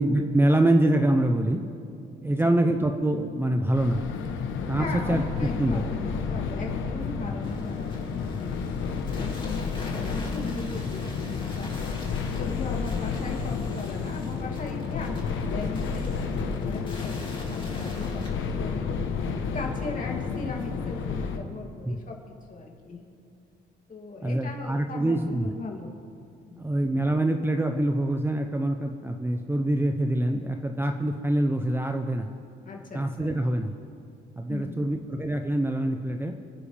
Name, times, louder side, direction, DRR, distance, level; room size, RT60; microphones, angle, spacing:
voice 1, 0.0-1.6 2.2-4.0 4.7-5.8 21.9-22.0 24.2-25.5 26.6-32.3 32.9-33.7 34.4-36.3, right 1 dB, 10° right, 5 dB, 0.8 m, -25 dB
voice 2, 2.2-2.6 4.8-11.7 12.0-18.2 18.6-18.9 19.5-22.2 22.5-23.0 23.9-26.0 26.4-26.7 32.6-33.3 34.5-35.1, left 3 dB, 40° left, -1 dB, 2.8 m, -38 dB
sound 1, 3.7-21.4, left 5 dB, 80° left, 1.2 m, -31 dB
sound 2, 7.4-18.3, left 2 dB, 25° left, 2.7 m, -45 dB
28.0 x 9.8 x 3.5 m, 2.5 s
cardioid pair, 90°, 20 cm